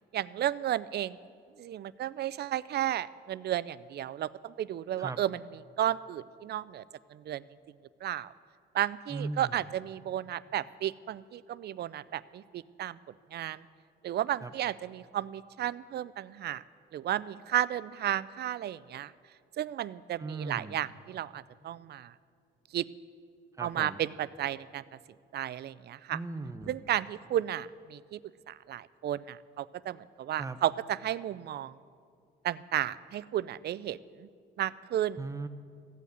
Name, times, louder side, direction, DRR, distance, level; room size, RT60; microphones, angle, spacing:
voice 1, 0.1-1.2 1.6-5.4 5.8-6.8 7.1-7.4 8.0-8.3 8.7-13.0 13.3-13.6 14.0-16.6 16.9-19.1 19.6-22.1 22.7-22.9 23.6-24.8 25.3-26.2 26.7-28.2 28.5-31.8 32.4-34.3 34.6-35.2, right 12 dB, 55° right, 18 dB, 0.4 m, -33 dB
voice 2, 9.1-9.6 14.4-14.5 20.2-20.8 23.6-24.0 26.1-26.7 30.4-30.6 35.2-35.5, right 3 dB, 15° right, 9 dB, 0.8 m, -38 dB
14.5 x 8.3 x 8.1 m, 2.3 s
cardioid pair, 90°, 20 cm